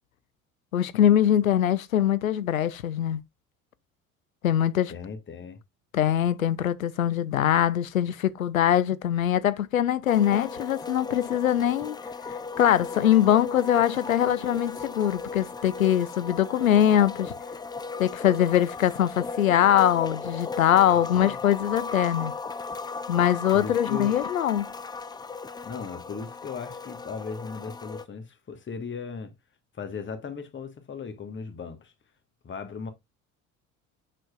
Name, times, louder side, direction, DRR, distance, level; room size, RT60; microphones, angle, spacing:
voice 1, 0.7-3.2 4.4-4.9 5.9-12.0 12.6-17.3 18.0-22.3 23.1-24.7, left 10 dB, 90° left, 0.5 m, -22 dB
voice 2, 4.9-5.6 20.8-20.9 21.2-21.4 23.5-24.2 25.6-29.3 29.7-31.9 32.4-32.9, left 5 dB, 30° left, 1.5 m, -37 dB
sound 1, 10.1-28.1, left 4 dB, 10° left, 0.4 m, -36 dB
6.4 x 6.2 x 2.4 m
figure-of-eight pair, 60°, 40 cm